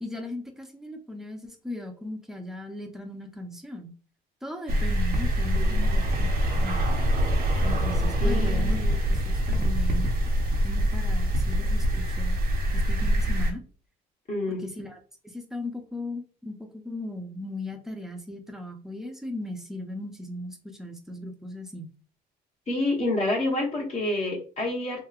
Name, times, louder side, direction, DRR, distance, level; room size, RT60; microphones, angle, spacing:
voice 1, 0.0-3.9 4.4-7.0 7.6-10.1 10.6-12.4 12.7-13.6 14.6-15.0 15.3-21.9, left 2 dB, ahead, 3 dB, 0.6 m, -37 dB
sound 1, 4.7-13.5, equal, 60° right, 0.8 m, -24 dB
voice 2, 8.2-9.0 14.3-14.6 22.7-25.0, left 2 dB, 40° left, -2 dB, 1.0 m, -28 dB
3.0 x 2.8 x 2.4 m, 0.40 s
cardioid pair, 110°, 17 cm